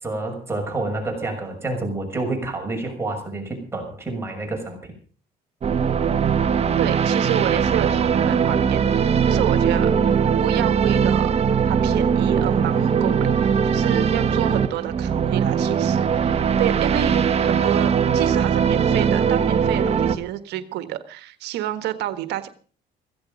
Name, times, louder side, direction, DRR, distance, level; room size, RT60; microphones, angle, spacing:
voice 1, 0.0-4.9, right 2 dB, 15° right, 1 dB, 6.4 m, -28 dB
sound 1, 5.6-20.2, right 7 dB, 40° right, 1.4 m, -20 dB
voice 2, 6.8-10.1 10.4-11.3 11.7-22.5, right 12 dB, 80° right, 11 dB, 1.6 m, -29 dB
16.0 x 16.0 x 5.3 m, 0.42 s
cardioid pair, 110°, 17 cm